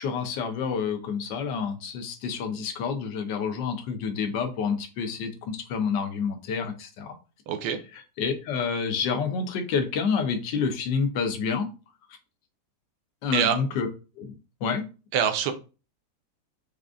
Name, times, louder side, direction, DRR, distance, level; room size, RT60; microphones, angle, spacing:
voice 1, 0.0-7.1 8.2-11.7 13.2-13.9 14.2-14.9, left 6 dB, 85° left, 1.3 m, -28 dB
voice 2, 7.5-7.8 13.3-13.6 15.1-15.5, right 8 dB, 75° right, 1.1 m, -24 dB
4.9 x 2.4 x 2.3 m
omnidirectional pair, 1.9 m